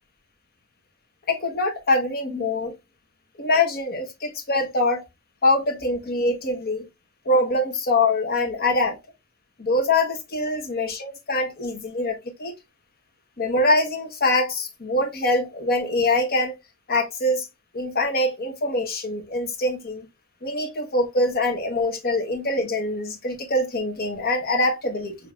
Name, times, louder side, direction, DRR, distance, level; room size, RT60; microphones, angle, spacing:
voice 1, 1.3-2.8 3.4-5.0 5.4-6.9 7.2-9.0 9.6-12.5 13.4-16.5 16.9-17.5 17.7-20.1 20.4-25.2, left 2 dB, 45° left, 1.1 m, -24 dB
5.8 x 2.8 x 2.4 m
head